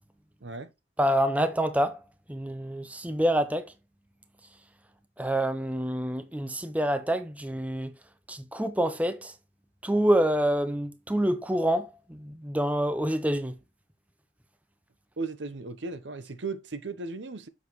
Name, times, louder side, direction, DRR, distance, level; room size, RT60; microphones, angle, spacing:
voice 1, 0.4-0.7 15.2-17.5, right 3 dB, 75° right, 0.8 m, -36 dB
voice 2, 1.0-3.7 5.2-7.9 8.3-9.3 9.8-13.6, right 1 dB, 10° right, 0.6 m, -27 dB
7.2 x 6.3 x 3.1 m
head